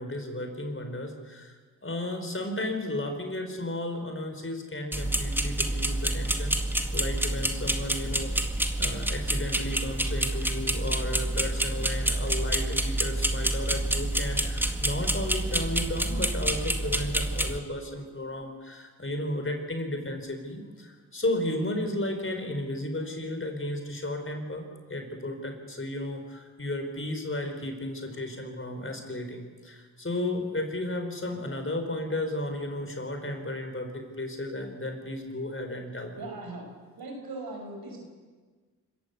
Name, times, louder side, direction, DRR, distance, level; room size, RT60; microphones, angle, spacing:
voice 1, 0.0-6.6 6.9-8.3 8.8-36.2, left 1 dB, 35° left, 5 dB, 5.0 m, -34 dB
sound 1, 4.9-17.6, right 1 dB, 5° right, 2.1 m, -28 dB
voice 2, 36.2-36.7 37.0-38.0, right 2 dB, 75° right, 2 dB, 5.6 m, -39 dB
25.5 x 14.5 x 8.3 m, 1.4 s
supercardioid pair, 45°, 37 cm